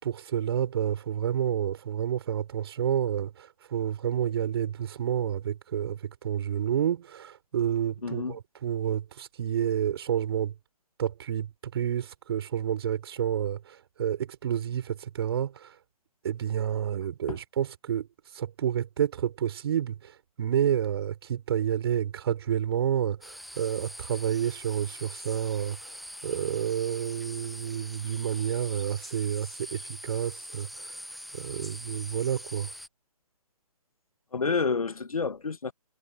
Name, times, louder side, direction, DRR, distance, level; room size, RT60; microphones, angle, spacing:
voice 1, 0.0-10.5 11.0-15.7 16.2-18.1 18.3-25.9 26.2-30.9 31.3-32.7, right 9 dB, 40° right, 6.2 m, -29 dB
voice 2, 8.0-8.4 17.3-17.4 34.3-35.7, left 4 dB, 70° left, 1.5 m, -29 dB
sound 1, 23.2-32.9, equal, ahead, 1.0 m, -43 dB
figure-of-eight pair, 135°, 19 cm